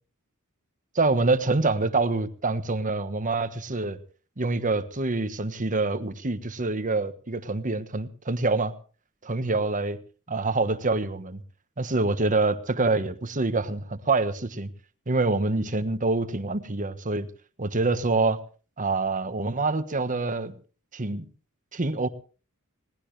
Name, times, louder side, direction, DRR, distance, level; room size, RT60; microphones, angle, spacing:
voice 1, 1.0-4.0 4.4-8.7 9.2-10.0 10.3-11.4 11.8-14.7 15.1-17.3 17.6-18.4 18.8-20.5 20.9-21.2 21.7-22.1, right 3 dB, 35° right, 11 dB, 1.3 m, -26 dB
21.0 x 18.5 x 3.3 m, 0.37 s
head